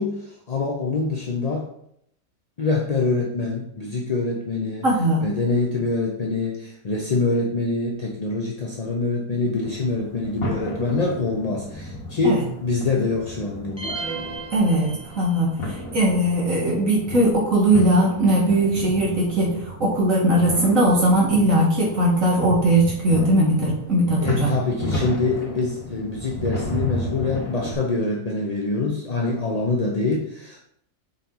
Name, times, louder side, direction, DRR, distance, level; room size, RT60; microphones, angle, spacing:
voice 1, 0.0-1.7 2.6-4.9 5.2-14.0 24.2-30.6, left 3 dB, 40° left, -1 dB, 0.5 m, -25 dB
voice 2, 4.8-5.2 12.2-12.4 14.5-24.5, right 1 dB, 60° right, -4 dB, 2.0 m, -19 dB
sound 1, 9.6-27.7, left 1 dB, 65° left, 2.6 m, -34 dB
sound 2, 13.8-15.6, right 4 dB, 10° left, 1.5 m, -34 dB
7.4 x 4.2 x 3.8 m, 0.73 s
omnidirectional pair, 1.6 m